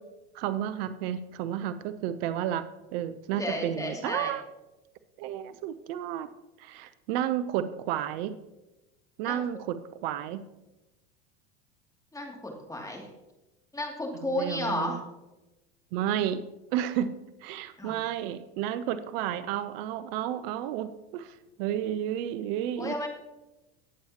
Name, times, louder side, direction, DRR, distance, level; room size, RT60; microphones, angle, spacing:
voice 1, 0.3-4.4 5.2-6.3 6.6-8.3 9.2-10.4 14.3-15.0 15.9-16.4 16.7-17.1 17.4-22.9, right 11 dB, 65° right, 12 dB, 0.8 m, -32 dB
voice 2, 3.4-4.3 9.3-9.4 12.1-13.1 13.7-15.0 17.8-18.0 22.8-23.1, left 1 dB, 10° left, 1 dB, 2.7 m, -33 dB
19.5 x 7.2 x 2.9 m, 1.0 s
hypercardioid pair, 95°, 32 cm